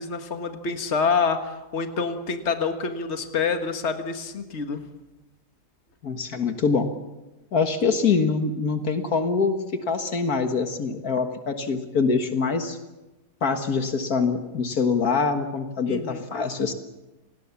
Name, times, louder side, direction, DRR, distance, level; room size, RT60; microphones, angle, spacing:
voice 1, 0.0-4.8 15.9-16.2, left 5 dB, 45° left, 6 dB, 1.9 m, -27 dB
voice 2, 6.0-6.9 7.5-9.6 9.9-12.8 13.4-16.7, left 5 dB, 70° left, 7 dB, 2.0 m, -24 dB
29.0 x 19.5 x 7.2 m, 1.1 s
omnidirectional pair, 1.7 m